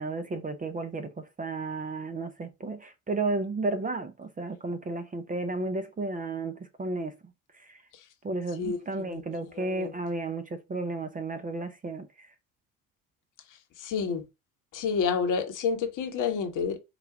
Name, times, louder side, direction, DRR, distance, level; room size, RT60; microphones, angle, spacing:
voice 1, 0.0-7.1 7.6-7.8 8.2-12.3, right 3 dB, 20° right, 0.7 m, -33 dB
voice 2, 8.6-9.2 9.6-9.9 13.8-14.2 14.7-16.8, left 6 dB, 50° left, 1.0 m, -29 dB
4.8 x 2.3 x 4.6 m
figure-of-eight pair, 55°, 41 cm